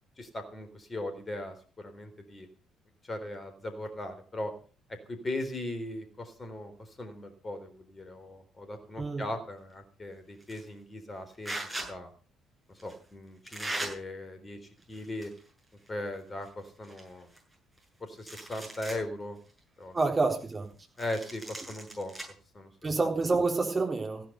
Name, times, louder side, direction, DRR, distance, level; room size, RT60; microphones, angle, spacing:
voice 1, 0.2-2.5 3.0-4.5 5.1-6.7 7.0-11.6 11.9-12.1 12.7-14.6 14.9-15.3 15.9-17.3 18.0-19.4 19.8-20.0 21.0-22.1 22.5-22.7, left 1 dB, 25° left, 9 dB, 3.9 m, -38 dB
sound 1, 10.4-10.7 11.4-11.9 12.8-12.9 13.5-13.9 14.8-15.5 15.8-15.9 16.4-16.5 16.8-17.8 18.2-19.0 19.5-19.6 21.0-22.2, right 1 dB, 5° right, 7.9 m, -39 dB
voice 2, 19.9-20.7 22.8-24.2, right 3 dB, 25° right, 2 dB, 3.8 m, -28 dB
15.5 x 10.5 x 6.7 m, 0.39 s
figure-of-eight pair, 45°, 0 cm